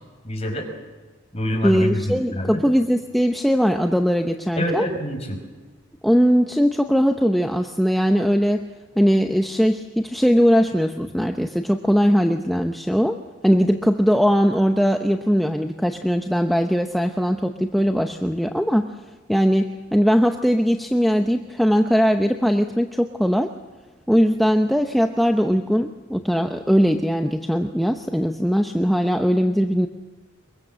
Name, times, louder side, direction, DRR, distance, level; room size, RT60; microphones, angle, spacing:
voice 1, 0.2-0.7 1.3-2.6 4.6-5.4, equal, 30° left, 3 dB, 5.3 m, -26 dB
voice 2, 1.6-4.9 6.0-8.7 9.0-13.2 13.4-18.9 19.3-23.5 24.1-29.9, equal, ahead, 4 dB, 0.7 m, -20 dB
23.5 x 23.0 x 7.6 m, 1.3 s
head